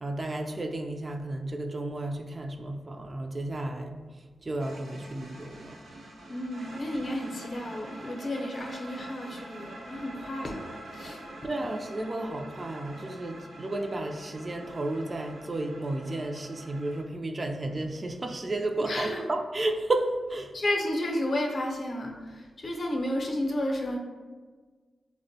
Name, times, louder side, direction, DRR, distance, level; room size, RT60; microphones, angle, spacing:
voice 1, 0.0-4.0 4.4-5.8 11.4-20.6, right 2 dB, 35° right, 5 dB, 0.3 m, -32 dB
sound 1, 4.6-17.0, right 1 dB, 90° right, 0.6 m, -45 dB
voice 2, 6.3-10.7 10.9-11.2 18.8-19.2 20.5-24.0, left 1 dB, 50° left, 1 dB, 0.6 m, -32 dB
4.2 x 2.1 x 2.6 m, 1.4 s
cardioid pair, 70°, 0 cm